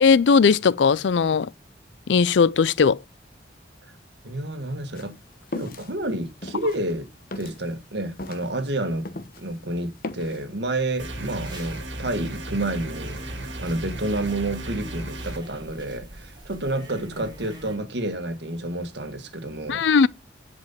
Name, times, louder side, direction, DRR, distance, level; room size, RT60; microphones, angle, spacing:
voice 1, 0.0-1.5 2.1-3.0 19.7-20.1, left 5 dB, 75° left, 0.4 m, -18 dB
voice 2, 4.2-5.2 5.5-7.1 7.4-9.1 9.4-19.8, right 1 dB, 65° right, 1.7 m, -29 dB
sound 1, 4.9-9.6 9.8-10.5, left 2 dB, 50° left, 1.0 m, -37 dB
sound 2, 10.9-17.8, right 2 dB, 25° right, 3.1 m, -45 dB
sound 3, 11.0-15.4, right 1 dB, 80° right, 2.0 m, -35 dB
10.5 x 5.2 x 5.7 m
head